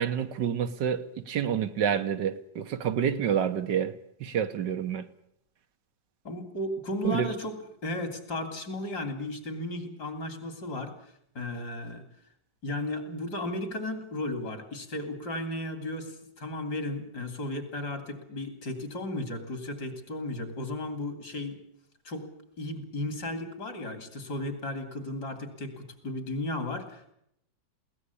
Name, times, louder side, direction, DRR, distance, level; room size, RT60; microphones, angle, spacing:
voice 1, 0.0-5.1 7.0-7.3, right 8 dB, 75° right, 1.7 m, -28 dB
voice 2, 6.3-7.6 7.8-10.9 11.4-12.0 12.6-21.6 22.0-22.3 22.6-27.1, left 1 dB, 65° left, 3.6 m, -35 dB
22.5 x 17.5 x 8.4 m
omnidirectional pair, 1.9 m